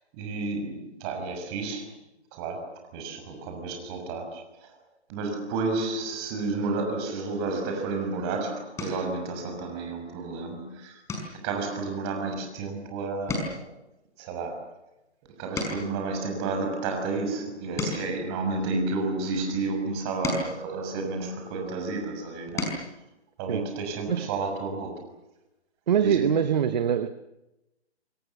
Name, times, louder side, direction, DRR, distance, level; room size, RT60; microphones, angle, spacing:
voice 1, 0.1-1.9 2.3-4.4 5.1-11.0 11.4-13.6 14.2-14.7 15.4-22.7 23.4-25.0 26.0-26.4, right 3 dB, 25° right, 4 dB, 6.3 m, -31 dB
sound 1, 7.9-8.2 8.7-9.2 9.7-10.0 10.3-10.5 11.0-12.9 13.1-16.1 16.7-19.2 19.8-21.7 22.2-22.9 24.3-24.4 24.7-24.9, left 3 dB, 10° left, 5.4 m, -37 dB
voice 2, 25.9-27.1, right 8 dB, 40° right, 12 dB, 1.3 m, -24 dB
27.5 x 25.0 x 7.0 m, 0.94 s
figure-of-eight pair, 150°, 33 cm